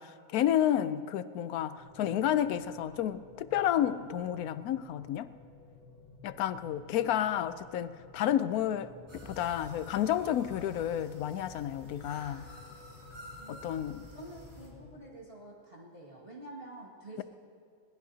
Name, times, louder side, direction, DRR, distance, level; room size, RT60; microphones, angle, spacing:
voice 1, 0.0-5.3 6.2-12.5 13.5-14.1, left 11 dB, 80° left, 1.1 m, -31 dB
sound 1, 1.8-14.9, left 2 dB, 50° left, 2.3 m, -55 dB
sound 2, 9.1-14.7, equal, 15° right, 2.9 m, -50 dB
voice 2, 14.1-17.2, right 2 dB, 40° right, 2.3 m, -48 dB
21.5 x 19.5 x 2.8 m
omnidirectional pair, 1.6 m